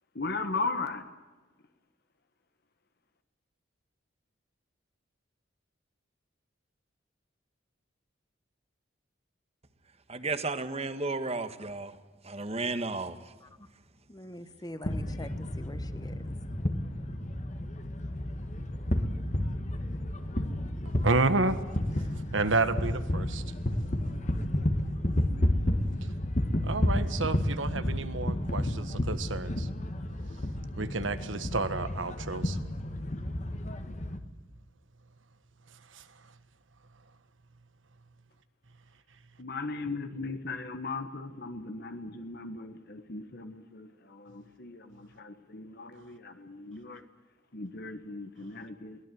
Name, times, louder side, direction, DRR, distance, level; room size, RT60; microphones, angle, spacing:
voice 1, 0.1-1.1 39.4-47.0 47.5-49.0, left 3 dB, 55° left, 1.4 m, -37 dB
voice 2, 10.1-11.9 12.2-13.2, right 3 dB, 30° right, 1.4 m, -33 dB
voice 3, 14.1-16.3, left 1 dB, 20° left, 1.3 m, -44 dB
sound 1, 14.8-34.2, left 1 dB, 40° left, 1.6 m, -31 dB
voice 4, 21.0-21.6 22.3-23.5 26.6-29.7 30.8-32.6 35.9-36.0, right 3 dB, 80° right, 1.6 m, -30 dB
22.5 x 17.5 x 9.3 m
head